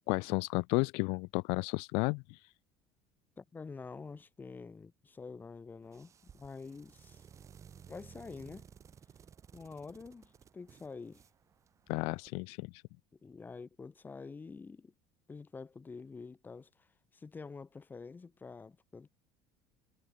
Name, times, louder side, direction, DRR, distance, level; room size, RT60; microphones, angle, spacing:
voice 1, 0.1-2.5 11.9-12.8, left 31 dB, 75° left, 0.4 m, -33 dB
voice 2, 3.4-7.2 7.9-8.7 9.5-11.2 13.2-14.9 15.3-16.9 17.1-19.1, left 4 dB, 20° left, 5.5 m, -47 dB
sound 1, 5.8-12.3, right 7 dB, 30° right, 3.9 m, -57 dB
cardioid pair, 130°, 10 cm